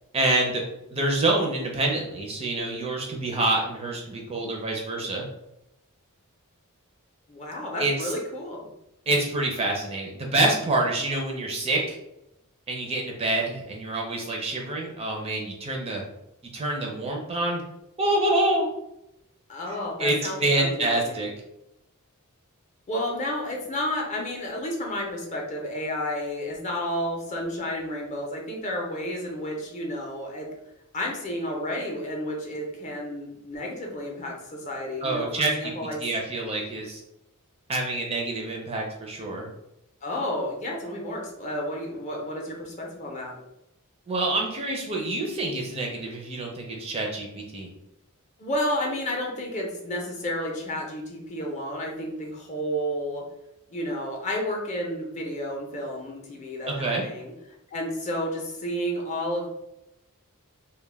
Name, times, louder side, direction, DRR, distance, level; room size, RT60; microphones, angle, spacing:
voice 1, 0.1-0.6 0.9-5.2 7.8-8.1 9.1-12.0 12.7-16.0 16.5-17.6 18.0-18.7 20.0-21.3 35.0-35.7 36.0-37.0 37.7-39.5 44.1-47.7 56.7-57.0, right 2 dB, 25° right, 0 dB, 0.4 m, -26 dB
voice 2, 7.3-8.6 19.5-21.3 22.9-30.5 30.9-36.0 40.0-43.4 48.4-53.2 53.7-57.3 57.7-59.5, equal, 30° left, -1 dB, 0.5 m, -31 dB
2.2 x 2.1 x 3.2 m, 0.86 s
head